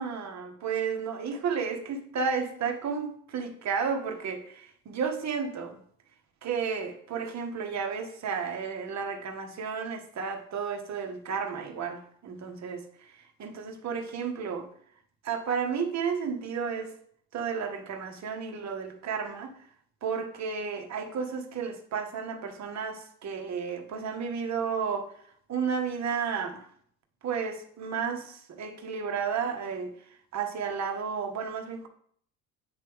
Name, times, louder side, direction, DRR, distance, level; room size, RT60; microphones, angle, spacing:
voice 1, 0.0-5.8 6.4-12.8 13.4-14.7 15.2-16.9 17.3-19.7 20.0-25.1 25.5-26.7 27.2-31.9, right 6 dB, 40° right, 1.1 m, -32 dB
9.0 x 3.2 x 3.5 m
supercardioid pair, 75°, 40 cm